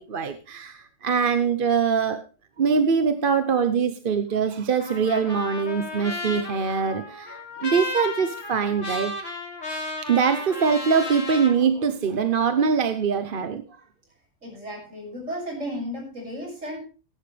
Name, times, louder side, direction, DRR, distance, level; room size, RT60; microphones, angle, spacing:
voice 1, 0.1-2.2 2.6-9.1 10.1-13.6, right 6 dB, 50° right, 9 dB, 1.0 m, -23 dB
Trumpet, 4.8-11.5, left 2 dB, 75° left, 3.3 m, -34 dB
voice 2, 14.4-16.8, equal, 75° right, 0 dB, 7.0 m, -34 dB
18.0 x 11.0 x 3.3 m, 0.34 s
omnidirectional pair, 1.3 m